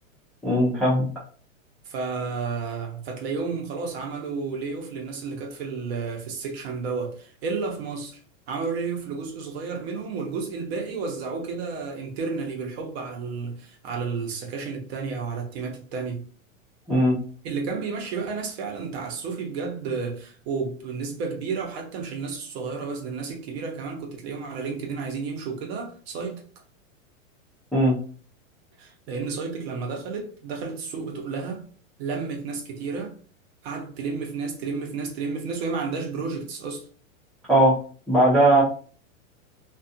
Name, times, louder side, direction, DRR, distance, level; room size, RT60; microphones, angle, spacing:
voice 1, 0.4-1.1 16.9-17.2 27.7-28.0 37.5-37.7 38.1-38.6, right 1 dB, ahead, 0.5 m, -18 dB
voice 2, 1.8-8.2 8.5-16.3 17.4-26.4 28.8-31.6 32.0-33.2 33.6-36.9, right 4 dB, 50° right, 0.8 m, -31 dB
2.4 x 2.4 x 2.6 m
supercardioid pair, 145°, 42 cm